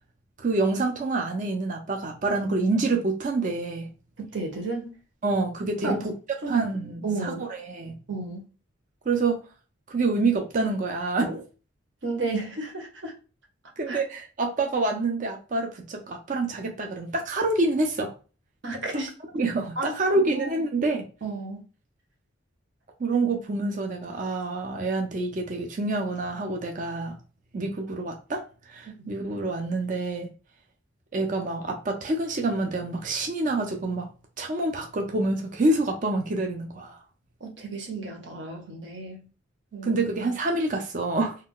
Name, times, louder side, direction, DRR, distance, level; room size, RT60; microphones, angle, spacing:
voice 1, 0.4-3.9 5.2-6.1 6.5-8.0 9.1-9.4 9.9-11.4 13.8-18.1 19.3-21.1 23.0-27.2 27.5-30.3 31.1-34.1 34.4-37.0 39.8-41.4, right 2 dB, 40° right, 0.4 m, -27 dB
voice 2, 4.3-4.9 5.8-6.0 6.4-6.7 7.0-7.4 8.1-8.4 12.0-13.1 13.9-14.0 18.6-19.1 19.8-20.5 21.2-21.6 37.4-39.3 39.7-40.1, right 3 dB, 60° right, 0.8 m, -32 dB
2.3 x 2.2 x 3.6 m
head